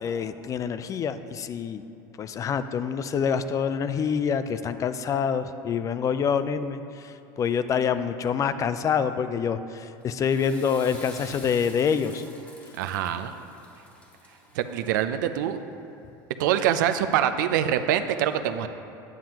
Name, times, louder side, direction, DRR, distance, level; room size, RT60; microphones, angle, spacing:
voice 1, 0.0-1.8 2.2-12.2, left 7 dB, 35° left, 12 dB, 0.4 m, -26 dB
Water / Toilet flush, 10.0-15.2, left 1 dB, 15° left, 1.3 m, -48 dB
voice 2, 12.8-13.3 14.6-15.6 16.4-18.7, right 10 dB, 85° right, 9 dB, 0.4 m, -24 dB
9.4 x 7.3 x 2.9 m, 2.8 s
supercardioid pair, 105°, 10 cm